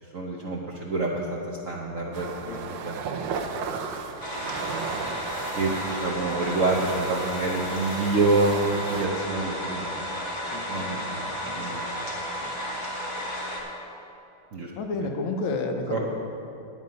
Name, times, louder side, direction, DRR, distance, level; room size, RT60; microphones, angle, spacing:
voice 1, 0.0-3.0 4.6-4.9 5.5-10.0 10.7-11.2 11.6-11.8 14.5-14.7 15.9-16.0, right 3 dB, 60° right, -3 dB, 0.8 m, -27 dB
sound 1, 2.1-9.1, right 5 dB, 80° right, 1.6 m, -35 dB
sound 2, 4.2-13.6, equal, 20° left, 1.4 m, -33 dB
voice 2, 10.5-11.1 11.5-11.7 12.4-12.5 14.8-16.1, left 3 dB, 70° left, 4 dB, 1.4 m, -31 dB
10.5 x 9.0 x 5.2 m, 2.8 s
omnidirectional pair, 2.4 m